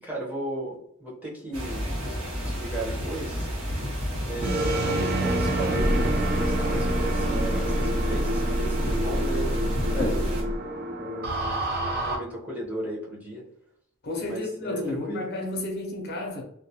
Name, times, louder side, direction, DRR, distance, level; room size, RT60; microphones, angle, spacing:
voice 1, 0.0-1.9 2.4-3.5 4.3-10.5 10.9-13.4 14.2-15.3, right 1 dB, 10° right, 0.7 m, -35 dB
sound 1, 1.5-10.4, equal, 85° right, 1.0 m, -31 dB
sound 2, 4.4-12.2, right 1 dB, 50° right, 0.5 m, -26 dB
voice 2, 14.0-16.4, left 2 dB, 55° left, 0.6 m, -32 dB
2.2 x 2.1 x 2.7 m
head